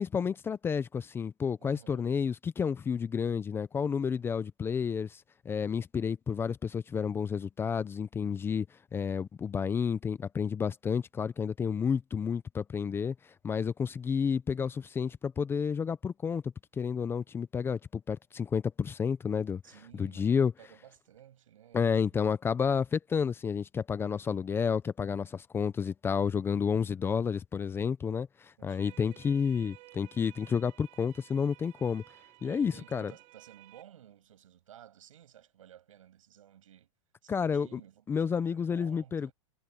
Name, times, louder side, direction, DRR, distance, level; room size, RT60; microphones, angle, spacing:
voice 1, 0.0-8.7 8.9-13.1 13.4-16.4 16.8-19.6 19.9-20.5 21.7-32.0 32.4-33.1 37.3-37.8 38.1-39.3, left 6 dB, 15° left, 0.6 m, -30 dB
voice 2, 1.6-2.1 19.6-22.3 28.6-29.5 32.4-36.9 37.2-39.3, right 10 dB, 90° right, 7.6 m, -55 dB
sound 1, 28.8-33.8, right 22 dB, 40° right, 1.9 m, -56 dB
supercardioid pair, 145°, 16 cm